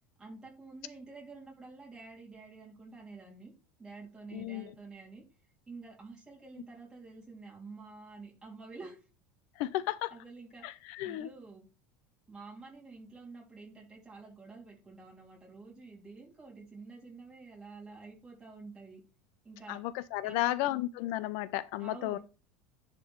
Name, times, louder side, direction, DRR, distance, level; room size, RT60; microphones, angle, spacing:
voice 1, 0.2-3.5 3.8-5.2 5.7-9.0 10.1-11.7 12.3-19.0 19.4-19.8 20.2-20.5 21.8-22.2, right 3 dB, 10° right, 3.3 m, -49 dB
voice 2, 4.3-4.6 9.6-10.1 10.6-11.3 19.7-22.2, left 15 dB, 55° left, 0.4 m, -33 dB
10.5 x 3.7 x 4.5 m
cardioid pair, 170°, 5 cm